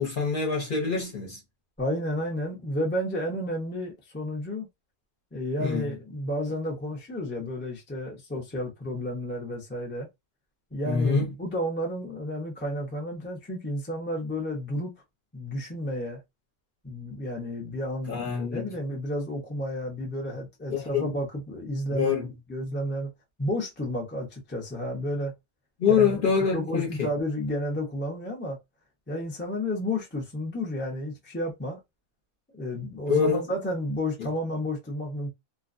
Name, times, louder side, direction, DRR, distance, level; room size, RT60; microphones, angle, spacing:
voice 1, 0.0-1.4 5.6-5.9 10.8-11.3 18.1-18.7 20.7-21.1 21.9-22.3 25.8-27.1 33.1-33.4 34.2-34.3, left 6 dB, 45° left, 0.8 m, -25 dB
voice 2, 1.8-4.7 5.3-10.1 10.7-14.9 15.3-16.2 16.8-22.1 22.5-23.1 23.4-25.3 25.9-26.2 26.5-28.6 29.1-31.8 32.5-35.3, left 1 dB, 15° left, 0.5 m, -31 dB
2.5 x 2.2 x 2.5 m
omnidirectional pair, 1.5 m